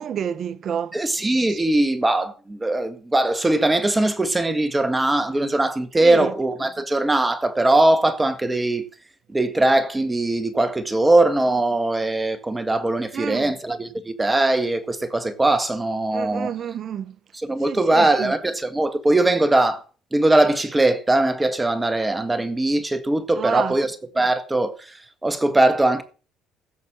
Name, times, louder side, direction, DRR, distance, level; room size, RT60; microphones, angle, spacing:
voice 1, 0.0-1.0 1.5-1.6 6.0-6.4 13.1-13.5 16.1-17.2 17.6-18.3 23.3-23.8, right 8 dB, 50° right, 0.8 m, -29 dB
voice 2, 0.9-8.8 9.3-16.5 17.3-19.8 20.1-26.0, right 2 dB, 15° right, 1.8 m, -21 dB
16.0 x 6.7 x 6.2 m
supercardioid pair, 85°, 0 cm